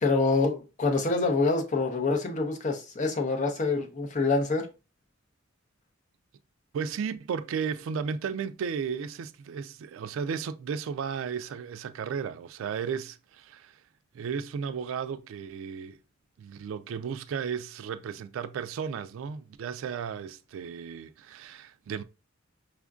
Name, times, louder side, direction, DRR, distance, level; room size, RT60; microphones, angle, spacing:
voice 1, 0.0-4.7, left 3 dB, 40° left, 0.6 m, -26 dB
voice 2, 6.7-13.8 14.1-16.0 16.4-22.0, right 6 dB, 75° right, 0.3 m, -34 dB
4.9 x 2.5 x 2.3 m
head